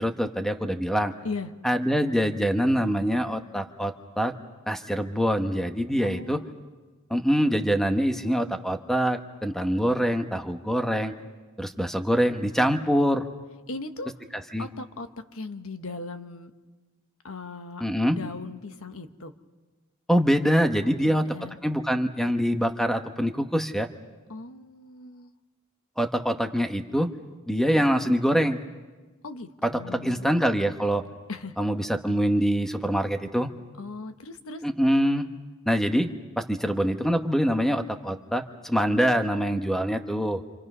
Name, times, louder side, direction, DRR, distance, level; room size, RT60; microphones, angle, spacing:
voice 1, 0.0-1.1 1.6-4.3 4.7-6.4 7.1-11.1 11.6-13.2 14.5-14.7 17.8-18.2 20.1-21.2 21.6-23.9 26.0-27.1 27.5-28.6 29.6-31.0 31.6-33.5 34.6-35.3 35.7-36.1 36.4-40.4, equal, ahead, 6 dB, 1.0 m, -24 dB
voice 2, 6.0-6.5 13.7-14.1 14.6-16.5 17.2-17.8 18.1-19.3 20.8-21.6 24.3-25.3 29.2-30.3 31.3-31.5 33.8-34.6, left 3 dB, 70° left, 8 dB, 1.3 m, -38 dB
28.0 x 27.5 x 5.5 m, 1.3 s
head